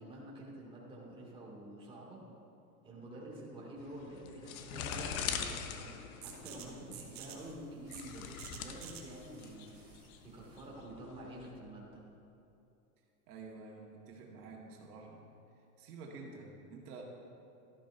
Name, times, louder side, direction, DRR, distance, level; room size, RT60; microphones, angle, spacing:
voice 1, 0.0-2.2 2.8-9.7 10.2-12.1, right 1 dB, 10° right, -5 dB, 2.3 m, -48 dB
sound 1, 3.8-11.4, left 7 dB, 60° left, 1.0 m, -43 dB
sound 2, 6.2-11.7, right 8 dB, 35° right, 1.5 m, -52 dB
voice 2, 13.3-15.2 15.8-17.0, right 4 dB, 70° right, -2 dB, 1.9 m, -49 dB
12.5 x 11.5 x 2.6 m, 2.7 s
supercardioid pair, 130°, 47 cm